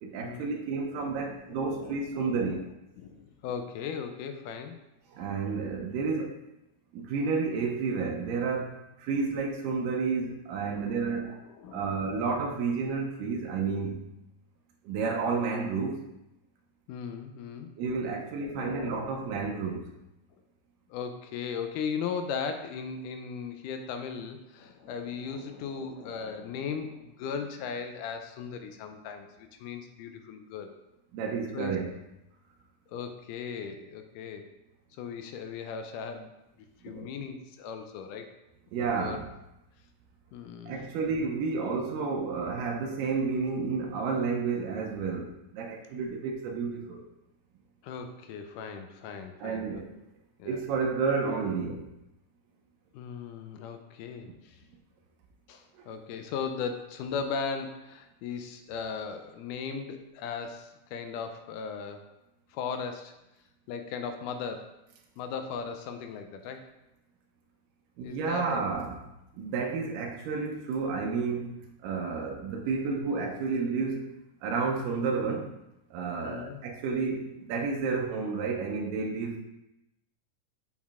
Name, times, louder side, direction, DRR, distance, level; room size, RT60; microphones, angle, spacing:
voice 1, 0.0-2.6 5.1-6.4 6.9-11.3 11.7-14.0 14.8-16.0 17.8-19.9 31.1-31.9 36.9-37.1 38.7-39.2 40.7-47.0 49.4-49.9 50.5-51.9 55.7-55.9 68.0-69.0 69.3-74.1 74.4-75.5 75.9-79.4, right 4 dB, 85° right, 0 dB, 2.3 m, -31 dB
voice 2, 0.9-2.7 3.0-4.8 10.6-12.2 16.9-19.3 20.3-20.4 20.9-30.7 31.5-31.7 32.9-34.5 35.0-36.3 36.8-38.4 39.0-39.2 40.3-40.9 47.8-49.8 50.4-50.6 52.9-54.6 55.5-62.1 62.5-63.2 63.7-64.8 65.2-66.7 68.0-68.6 76.2-76.6, left 6 dB, 80° left, 6 dB, 2.1 m, -38 dB
7.1 x 6.2 x 2.4 m, 0.91 s
omnidirectional pair, 3.8 m